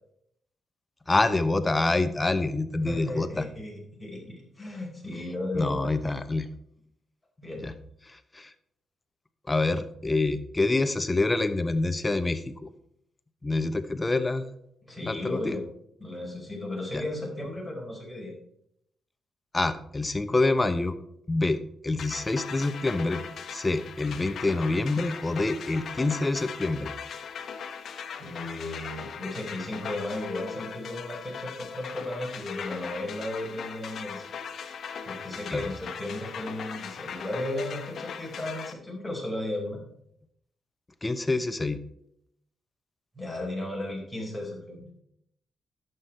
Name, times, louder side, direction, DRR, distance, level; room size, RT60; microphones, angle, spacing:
voice 1, 1.1-3.5 5.5-6.5 7.6-7.7 8.1-8.5 9.5-12.7 13.4-14.6 15.0-15.6 16.9-17.0 19.5-20.9 21.3-23.2 23.5-26.9 35.5-35.7 41.0-41.8, left 2 dB, 20° left, 10 dB, 0.8 m, -26 dB
voice 2, 2.8-5.9 7.4-7.6 14.9-15.6 16.0-18.3 28.2-34.3 35.0-39.8 43.1-44.9, left 1 dB, 5° left, -2 dB, 4.6 m, -35 dB
sound 1, 22.0-38.7, left 7 dB, 65° left, 1.1 m, -39 dB
11.0 x 8.0 x 4.3 m, 0.72 s
cardioid pair, 100°, 0 cm